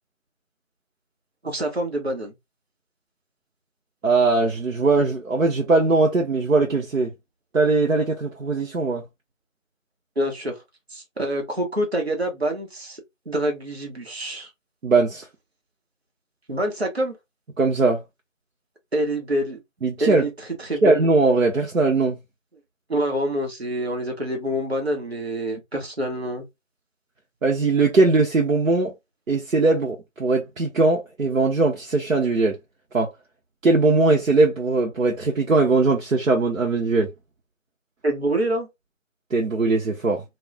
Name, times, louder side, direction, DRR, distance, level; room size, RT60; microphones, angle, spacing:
voice 1, 1.4-2.3 10.2-10.6 10.9-13.0 13.3-14.5 16.5-17.2 18.9-19.6 20.0-20.3 20.6-20.9 22.9-26.4 38.0-38.7, right 1 dB, 50° right, 1.0 m, -26 dB
voice 2, 4.0-7.1 7.5-9.0 14.8-15.3 17.6-18.0 19.8-20.3 20.8-22.2 27.4-28.9 29.3-32.6 32.9-33.1 33.6-37.1 39.3-40.2, right 3 dB, 85° right, 0.7 m, -20 dB
2.3 x 2.1 x 3.4 m
figure-of-eight pair, 175°, 40 cm